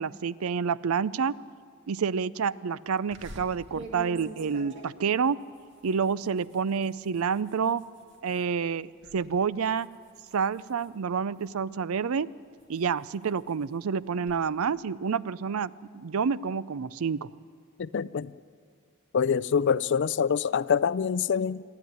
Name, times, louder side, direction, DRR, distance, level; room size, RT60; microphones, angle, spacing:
voice 1, 0.0-1.4 1.9-5.4 5.8-7.8 8.2-9.9 10.3-12.3 12.7-17.3, right 6 dB, 85° right, 0.5 m, -28 dB
sound 1, 3.1-8.5 8.9-9.3 9.6-11.7 12.2-14.4, right 2 dB, 60° right, 2.1 m, -47 dB
voice 2, 17.8-18.3 19.1-21.6, left 7 dB, 55° left, 0.4 m, -25 dB
27.0 x 10.5 x 9.4 m
head